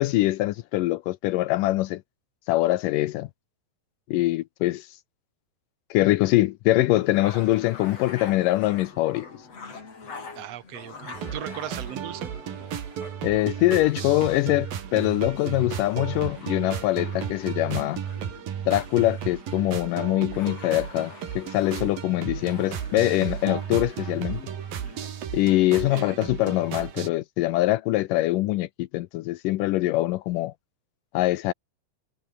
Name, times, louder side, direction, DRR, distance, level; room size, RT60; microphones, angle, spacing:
voice 1, 0.0-2.0 2.5-3.3 4.1-4.9 5.9-9.3 13.2-18.0 18.7-24.4 25.3-30.5 31.1-31.5, left 17 dB, 80° left, 2.2 m, -23 dB
sound 1, 6.9-25.1, left 4 dB, 45° left, 5.8 m, -45 dB
voice 2, 10.3-12.3 25.7-26.2, right 12 dB, 60° right, 2.0 m, -38 dB
sound 2, 11.1-27.1, right 8 dB, 80° right, 4.4 m, -34 dB
omnidirectional pair, 4.0 m